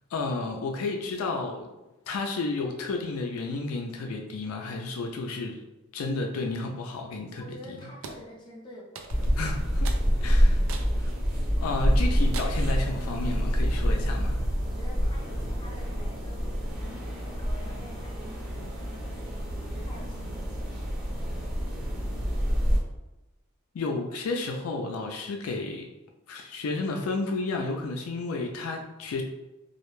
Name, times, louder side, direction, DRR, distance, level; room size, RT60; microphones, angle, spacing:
voice 1, 0.1-1.7 2.1-5.6 5.9-7.8 9.4-9.9 10.2-10.6 11.0-11.1 11.6-14.4 23.7-25.9 26.3-29.2, left 3 dB, 80° left, 2 dB, 0.4 m, -32 dB
voice 2, 7.4-9.3 14.6-20.9, left 1 dB, 20° left, -4 dB, 0.6 m, -48 dB
sound 1, 8.0-8.2 9.0-9.4 9.8-10.1 10.7-11.0 11.5-11.6 12.3-12.7, right 5 dB, 65° right, 0.3 m, -40 dB
sound 2, 9.1-22.8, equal, 45° right, 0.7 m, -27 dB
2.3 x 2.1 x 3.0 m, 1.0 s
head